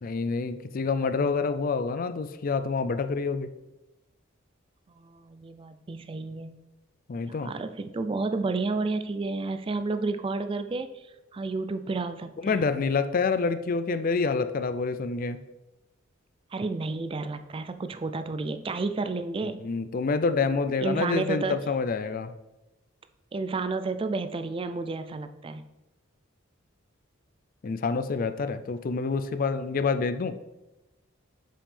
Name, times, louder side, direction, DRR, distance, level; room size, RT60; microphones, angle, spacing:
voice 1, 0.0-3.5 7.1-7.5 12.4-15.4 19.6-22.3 27.6-30.3, left 4 dB, 45° left, 11 dB, 0.4 m, -27 dB
voice 2, 4.9-6.6 7.2-11.1 11.3-12.6 16.5-19.7 20.8-21.6 23.3-25.6, right 3 dB, 25° right, 9 dB, 0.3 m, -31 dB
7.5 x 5.3 x 3.4 m, 1.0 s
head